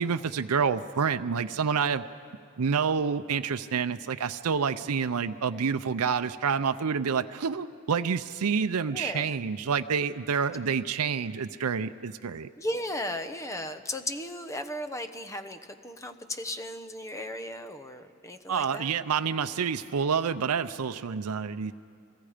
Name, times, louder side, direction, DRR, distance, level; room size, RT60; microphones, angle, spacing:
voice 1, 0.0-2.0 2.6-12.5 18.5-21.7, right 6 dB, 80° right, 9 dB, 0.6 m, -28 dB
voice 2, 8.9-9.3 12.6-18.9 20.9-21.2, left 1 dB, 15° left, 9 dB, 0.9 m, -36 dB
30.0 x 22.0 x 5.1 m, 2.3 s
head